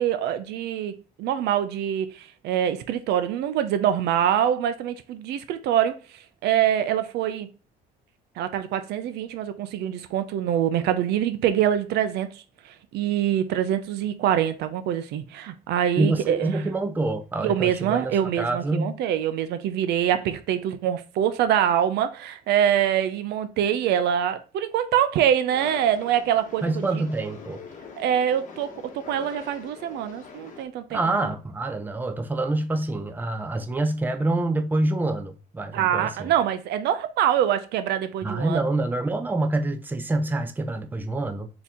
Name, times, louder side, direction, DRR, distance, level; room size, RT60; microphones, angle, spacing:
voice 1, 0.0-7.5 8.4-16.6 17.4-27.0 27.9-31.0 35.7-38.6, right 10 dB, 75° right, 0.5 m, -25 dB
voice 2, 16.0-18.9 26.6-27.6 30.9-36.3 38.2-41.5, right 2 dB, 10° right, 0.5 m, -26 dB
sound 1, 25.5-30.7, left 5 dB, 50° left, 1.0 m, -43 dB
4.1 x 2.9 x 3.6 m
cardioid pair, 110°, 17 cm